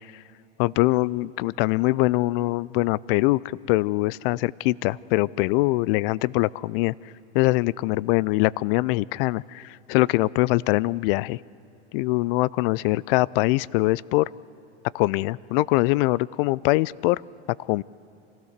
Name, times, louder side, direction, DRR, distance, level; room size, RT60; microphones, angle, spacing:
voice 1, 0.6-6.9 7.3-11.4 11.9-14.3 14.9-17.2 17.7-17.8, left 20 dB, 55° left, 23 dB, 0.4 m, -23 dB
25.5 x 16.0 x 6.6 m, 2.5 s
hypercardioid pair, 100°, 34 cm